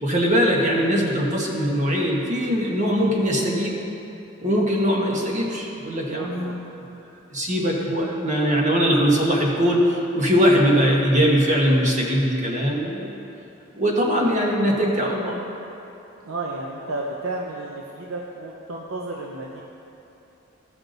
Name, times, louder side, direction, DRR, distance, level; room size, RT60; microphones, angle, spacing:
voice 1, 0.0-3.8 4.4-6.5 6.9-7.0 7.3-13.2 13.7-15.4, equal, 35° right, -2 dB, 1.4 m, -21 dB
voice 2, 0.7-1.0 6.1-6.6 16.2-19.6, right 2 dB, 80° right, -2 dB, 0.7 m, -32 dB
15.0 x 5.9 x 4.0 m, 2.9 s
head